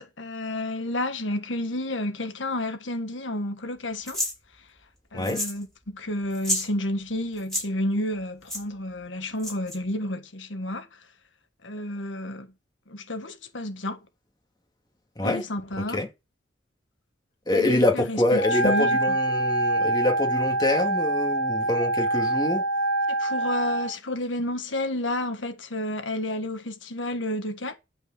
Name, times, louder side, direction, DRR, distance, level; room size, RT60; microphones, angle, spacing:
voice 1, 0.0-4.2 5.1-10.9 11.6-12.5 12.9-14.0 15.2-16.0 17.5-19.1 23.1-27.8, left 1 dB, 85° left, 1.7 m, -31 dB
sound 1, 4.1-4.3 5.2-5.6 5.9-6.0 6.3-6.7 7.4-7.6 8.5-8.6 9.4-9.8, equal, 5° left, 7.3 m, -29 dB
voice 2, 17.5-22.6, left 2 dB, 20° left, 2.6 m, -25 dB
Wind instrument woodwind instrument, 18.3-23.9, right 2 dB, 40° left, 2.8 m, -25 dB
12.0 x 5.1 x 6.9 m
head